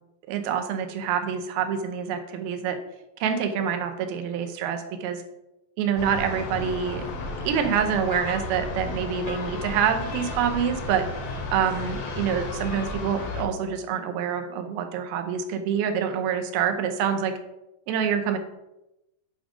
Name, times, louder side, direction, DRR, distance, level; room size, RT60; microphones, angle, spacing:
voice 1, 0.3-2.8 3.2-5.2 5.8-7.1 7.4-11.0 11.5-17.3 17.9-18.4, right 7 dB, 85° right, 6 dB, 2.6 m, -26 dB
sound 1, 6.0-13.4, left 2 dB, 75° left, 3.0 m, -33 dB
8.5 x 4.9 x 3.7 m, 0.91 s
omnidirectional pair, 4.3 m